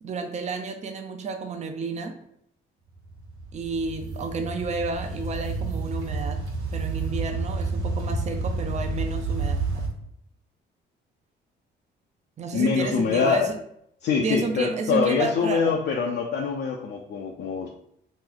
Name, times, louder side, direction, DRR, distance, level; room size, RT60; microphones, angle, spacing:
voice 1, 0.0-2.1 3.5-6.5 6.7-9.9 12.4-13.6 14.2-15.8, right 4 dB, 35° right, 5 dB, 0.5 m, -31 dB
sound 1, 2.9-9.9, right 3 dB, 85° right, 0.7 m, -30 dB
voice 2, 12.5-13.5 14.0-17.7, left 6 dB, 60° left, 0 dB, 0.4 m, -24 dB
3.0 x 2.0 x 3.7 m, 0.73 s
cardioid pair, 90°, 20 cm